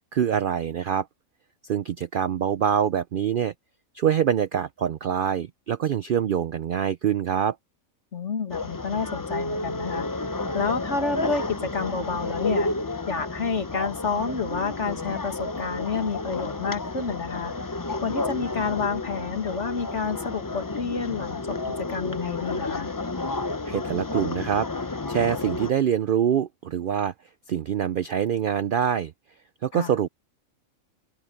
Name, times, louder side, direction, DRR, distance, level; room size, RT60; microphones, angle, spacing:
voice 1, 0.1-1.1 1.6-3.5 3.9-7.6 23.6-27.1 27.5-29.1 29.6-30.1, right 9 dB, 65° right, 0.5 m, -25 dB
voice 2, 8.1-10.1 10.5-12.7 13.1-22.9 29.7-29.9, left 5 dB, 60° left, 2.2 m, -29 dB
sound 1, 8.5-25.7, left 3 dB, 25° left, 0.4 m, -31 dB
open air
omnidirectional pair, 1.4 m